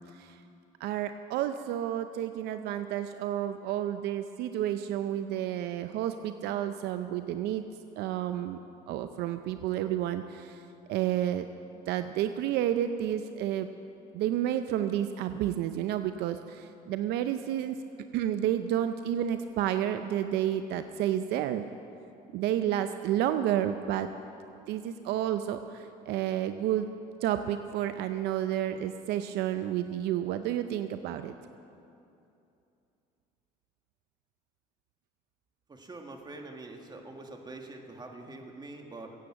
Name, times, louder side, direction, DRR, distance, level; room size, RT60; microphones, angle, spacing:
voice 1, 0.8-7.6 8.0-8.6 8.9-11.5 11.9-13.7 14.1-17.8 18.1-21.7 22.3-24.1 24.7-26.9 27.2-31.3, right 11 dB, 75° right, 10 dB, 0.6 m, -30 dB
voice 2, 35.7-39.2, right 2 dB, 25° right, 3 dB, 1.9 m, -44 dB
16.0 x 8.5 x 7.7 m, 2.7 s
supercardioid pair, 85°, 17 cm